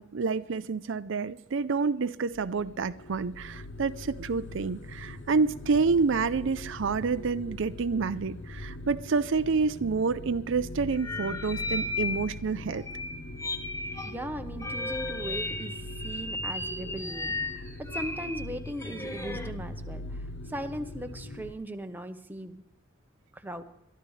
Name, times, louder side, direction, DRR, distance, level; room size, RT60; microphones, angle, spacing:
voice 1, 0.0-12.8, right 4 dB, 65° right, 0.5 m, -28 dB
sound 1, 2.3-21.5, left 1 dB, 60° left, 0.8 m, -42 dB
sound 2, 10.9-12.3 12.6-14.1 14.6-19.5, left 2 dB, 15° left, 1.0 m, -35 dB
voice 2, 14.0-22.6 23.3-23.6, right 1 dB, 10° right, 0.9 m, -39 dB
22.5 x 13.0 x 3.2 m
head